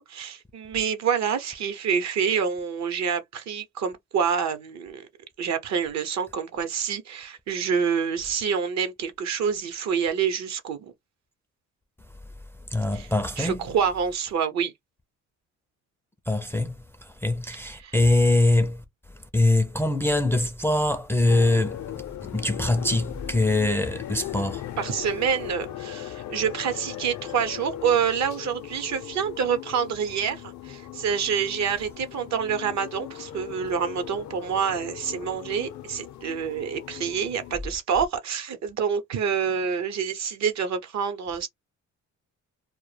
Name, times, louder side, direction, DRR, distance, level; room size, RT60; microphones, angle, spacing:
voice 1, 0.0-5.1 5.4-10.9 12.9-13.1 13.4-14.7 17.8-17.9 24.8-41.5, right 7 dB, 65° right, 0.7 m, -27 dB
voice 2, 12.7-13.6 16.3-18.8 19.3-21.8 22.2-24.6, left 2 dB, 10° left, 0.4 m, -23 dB
sound 1, 21.2-37.6, left 11 dB, 70° left, 0.5 m, -38 dB
2.1 x 2.1 x 3.2 m
cardioid pair, 90°, 30 cm